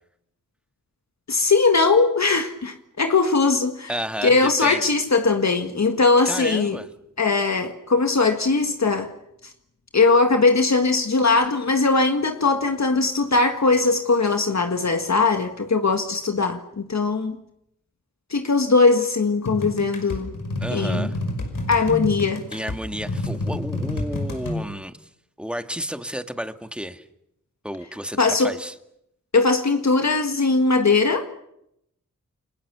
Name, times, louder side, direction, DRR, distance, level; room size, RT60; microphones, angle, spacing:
voice 1, 1.3-3.9 4.2-6.8 7.2-9.1 9.9-17.4 18.3-20.3 20.7-21.1 21.7-22.4 28.2-28.5 29.3-31.3, left 3 dB, 60° left, 1.8 m, -20 dB
voice 2, 3.9-4.9 6.3-6.9 20.6-21.2 22.5-25.0 25.4-27.1 27.6-28.7, equal, 5° right, 2.0 m, -31 dB
sound 1, 19.4-24.6, left 2 dB, 85° left, 5.6 m, -29 dB
30.0 x 22.0 x 6.9 m
cardioid pair, 50°, 32 cm